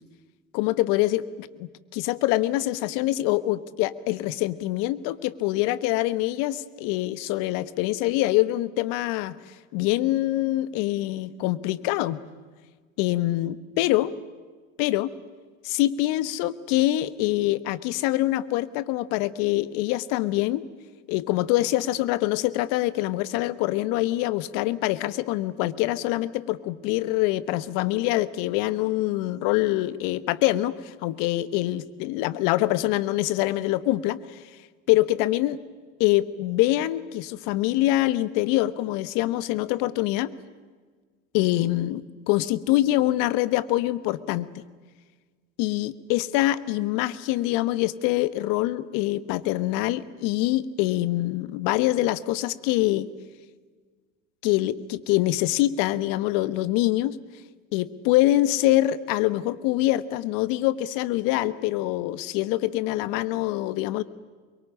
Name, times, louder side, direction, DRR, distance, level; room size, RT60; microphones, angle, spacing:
voice 1, 0.5-9.4 9.7-12.2 13.0-14.1 14.8-15.1 15.6-20.6 21.1-34.2 34.9-35.6 36.0-40.3 41.3-44.6 45.6-53.1 54.4-57.2 57.7-64.0, left 16 dB, 60° left, 16 dB, 1.4 m, -25 dB
24.0 x 23.0 x 10.0 m, 1.5 s
hypercardioid pair, 85°, 36 cm